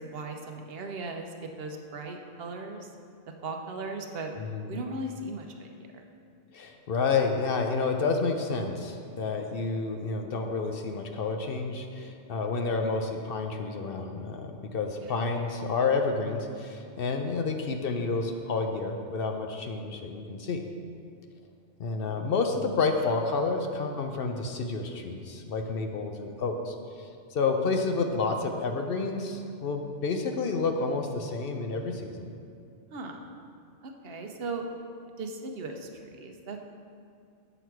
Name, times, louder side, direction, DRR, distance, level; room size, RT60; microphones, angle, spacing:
voice 1, 0.1-1.3 1.6-2.9 3.4-4.3 4.6-6.0 15.0-15.1 32.9-33.3 33.8-34.6 35.2-36.6, right 3 dB, 60° right, 3 dB, 0.9 m, -37 dB
voice 2, 4.4-4.8 6.5-20.6 21.8-32.3, left 4 dB, 60° left, 4 dB, 0.8 m, -30 dB
7.9 x 6.1 x 4.6 m, 2.5 s
omnidirectional pair, 1.2 m